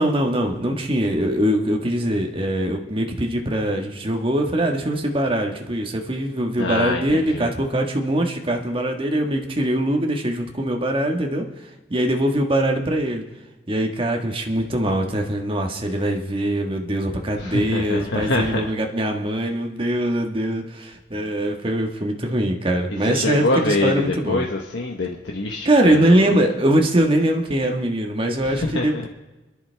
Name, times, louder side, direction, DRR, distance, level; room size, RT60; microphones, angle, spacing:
voice 1, 0.0-11.4 11.9-13.2 13.7-24.5 25.6-29.1, right 1 dB, 30° right, 2 dB, 1.6 m, -22 dB
voice 2, 6.6-7.5 17.4-18.7 23.0-26.4 28.4-29.1, left 2 dB, 85° left, 0 dB, 1.2 m, -25 dB
29.5 x 11.0 x 3.5 m, 1.1 s
head